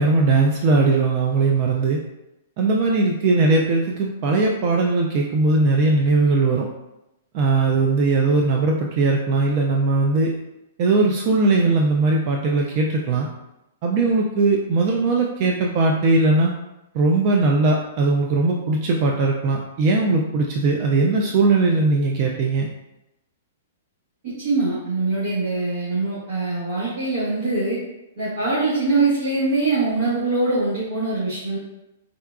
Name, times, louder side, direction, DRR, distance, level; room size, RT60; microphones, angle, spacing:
voice 1, 0.0-2.0 2.6-6.7 7.3-10.3 10.8-13.3 13.8-16.5 16.9-22.7, right 3 dB, 45° right, 0 dB, 0.4 m, -19 dB
voice 2, 24.2-27.8 28.2-31.6, right 3 dB, 65° right, -10 dB, 1.3 m, -23 dB
3.7 x 2.3 x 2.3 m, 0.90 s
hypercardioid pair, 130°, 0 cm